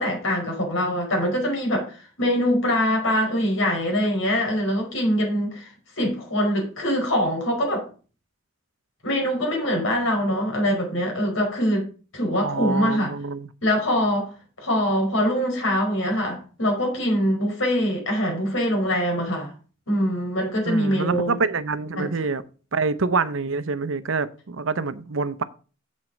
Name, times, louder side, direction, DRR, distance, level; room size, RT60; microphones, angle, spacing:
voice 1, 0.0-1.8 2.2-5.7 6.0-7.9 9.0-11.9 12.1-13.1 13.6-14.3 14.6-19.5 19.9-21.4 22.0-22.1, equal, 70° left, 4.8 m, -23 dB
voice 2, 12.4-13.5 20.6-22.4 22.7-25.4, right 4 dB, 70° right, 0.7 m, -26 dB
7.5 x 7.5 x 5.1 m
head